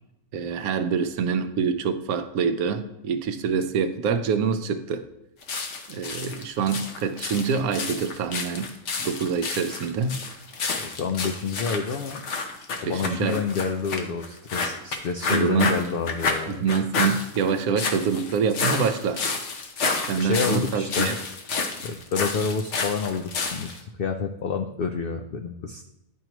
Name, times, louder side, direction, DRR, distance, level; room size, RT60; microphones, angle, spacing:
voice 1, 0.3-5.1 5.9-8.7 9.0-10.2 12.8-13.4 15.3-15.8 16.5-19.2 20.1-21.2, right 6 dB, 80° right, 9 dB, 1.1 m, -25 dB
sound 1, 5.4-23.8, left 4 dB, 60° left, 1.1 m, -30 dB
voice 2, 10.8-12.2 12.8-16.6 20.2-21.1 21.8-25.8, left 5 dB, 80° left, 5 dB, 0.5 m, -28 dB
10.0 x 4.6 x 3.0 m, 0.84 s
omnidirectional pair, 1.5 m